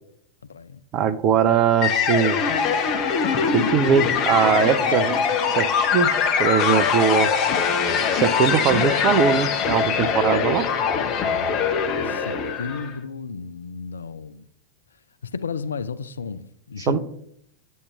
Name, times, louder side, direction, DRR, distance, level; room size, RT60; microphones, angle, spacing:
voice 1, 0.9-2.4 3.5-5.2 5.6-6.1 6.4-7.3 8.1-10.7 16.8-17.0, right 8 dB, 35° right, 0.5 m, -21 dB
sound 1, 1.8-13.0, left 6 dB, 35° left, 0.8 m, -22 dB
voice 2, 12.0-14.4 15.2-17.0, left 5 dB, 70° left, 0.4 m, -33 dB
9.8 x 6.3 x 3.4 m
figure-of-eight pair, 90°, 0 cm